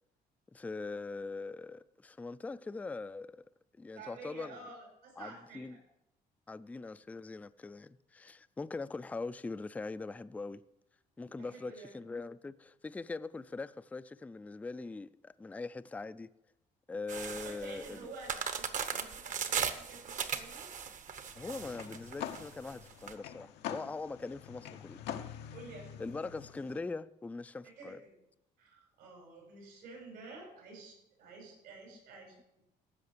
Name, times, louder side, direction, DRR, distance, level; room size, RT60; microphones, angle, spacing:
voice 1, 0.5-3.4 3.8-4.6 5.2-5.8 6.5-10.6 11.2-16.3 16.9-18.0 21.3-25.0 26.0-28.0, left 3 dB, 10° left, 0.3 m, -42 dB
voice 2, 3.9-5.8 11.3-11.9 17.4-20.7 25.5-26.1 27.6-28.2 28.6-32.6, right 3 dB, 80° right, 5.5 m, -50 dB
sound 1, 17.1-23.1, right 6 dB, 50° right, 1.0 m, -38 dB
sound 2, 21.3-26.8, left 10 dB, 90° left, 0.8 m, -45 dB
15.0 x 5.8 x 6.7 m
cardioid pair, 110°, 17 cm